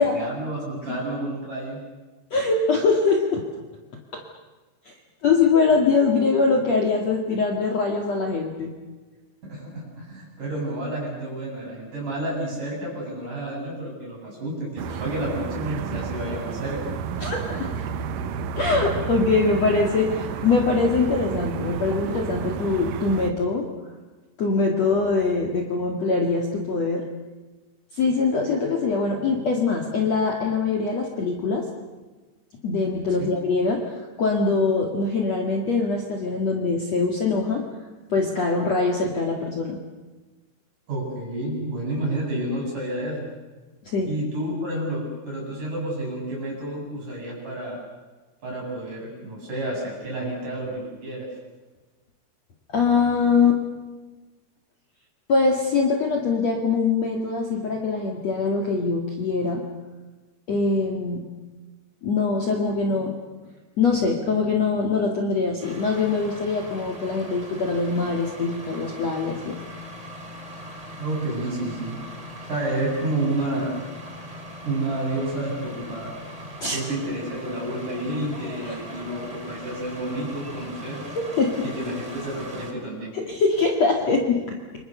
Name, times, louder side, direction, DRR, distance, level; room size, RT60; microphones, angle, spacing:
voice 1, 0.0-1.8 9.4-16.8 33.2-33.3 40.9-43.3 44.1-47.8 48.4-51.3 71.0-72.0 72.5-73.7 74.6-76.1 76.7-81.0 81.6-83.1, right 1 dB, 40° right, -2 dB, 9.4 m, -30 dB
voice 2, 2.3-3.4 4.1-4.2 4.9-5.0 5.2-8.7 17.2-17.8 18.6-23.7 24.4-27.0 27.9-31.7 32.6-37.7 38.1-39.8 43.9-44.2 52.7-53.6 55.3-59.6 60.5-61.2 62.0-63.2 63.8-69.6 76.6-76.9 78.6-78.8 81.2-81.7 83.1-84.6, left 4 dB, 45° left, 1 dB, 2.5 m, -23 dB
sound 1, 14.8-23.3, right 7 dB, 85° right, 1.8 m, -31 dB
sound 2, 65.6-82.7, equal, 10° right, 2.7 m, -40 dB
29.0 x 25.5 x 6.8 m, 1.2 s
omnidirectional pair, 5.4 m